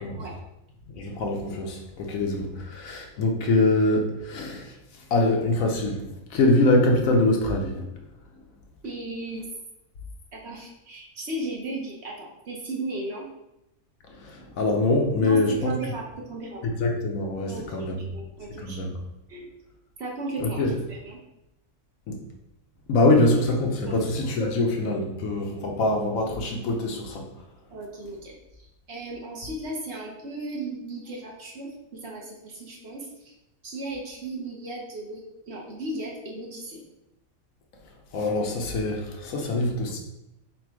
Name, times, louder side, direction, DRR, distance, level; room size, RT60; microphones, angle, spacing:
voice 1, 0.9-4.8 5.1-8.0 14.2-15.8 16.6-18.0 18.6-18.9 20.4-20.7 22.1-22.2 22.9-27.2 38.1-40.0, left 2 dB, 80° left, 2 dB, 1.1 m, -24 dB
voice 2, 8.8-9.5 10.3-13.3 15.2-16.6 17.5-18.8 19.3-19.5 20.0-21.2 23.9-24.0 27.7-33.3 33.6-36.8 39.4-39.5, right 2 dB, 55° right, -2 dB, 1.0 m, -36 dB
4.2 x 2.3 x 4.5 m, 0.88 s
omnidirectional pair, 1.4 m